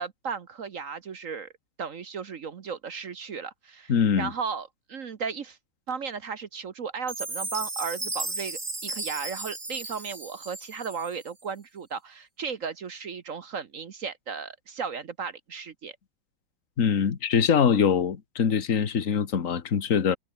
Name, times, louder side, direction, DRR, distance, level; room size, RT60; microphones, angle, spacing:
voice 1, 0.0-1.5 1.8-5.6 5.9-16.0, right 6 dB, 50° right, 1.2 m, -35 dB
voice 2, 3.9-4.3 16.8-20.2, left 7 dB, 40° left, 1.8 m, -23 dB
Chime, 7.1-11.3, right 2 dB, 30° right, 4.6 m, -35 dB
omnidirectional pair, 2.3 m